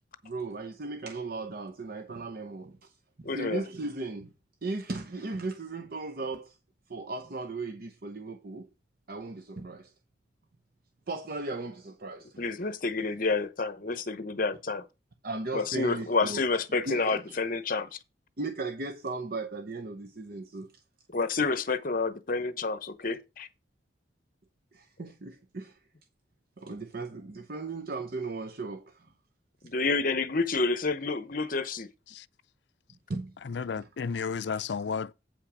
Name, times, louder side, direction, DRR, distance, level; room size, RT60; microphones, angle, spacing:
voice 1, 0.2-2.9 3.2-4.3 4.6-6.6 6.9-8.7 9.1-9.9 11.1-12.4 15.2-16.4 16.9-17.4 18.4-20.7 24.7-25.8 26.6-29.1 33.1-33.9, right 3 dB, 55° right, 0.8 m, -37 dB
voice 2, 3.2-3.6 12.4-14.8 15.5-18.0 21.1-23.5 29.6-31.9, left 3 dB, 50° left, 0.9 m, -29 dB
voice 3, 33.5-35.1, left 5 dB, 65° left, 0.4 m, -32 dB
8.6 x 5.7 x 4.9 m
head